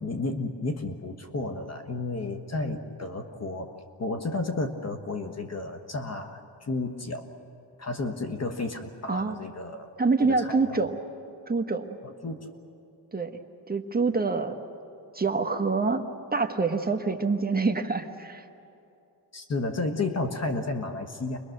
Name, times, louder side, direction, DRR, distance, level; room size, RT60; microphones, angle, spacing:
voice 1, 0.0-3.7 4.0-7.3 7.8-9.9 10.2-10.8 12.0-12.5 19.3-21.4, left 3 dB, 40° left, 6 dB, 1.5 m, -32 dB
voice 2, 10.0-11.0 11.5-12.0 13.1-13.4 13.7-14.6 15.1-16.0 16.3-18.4, right 4 dB, 20° right, 5 dB, 1.3 m, -26 dB
30.0 x 23.0 x 6.6 m, 2.7 s
cardioid pair, 95°, 41 cm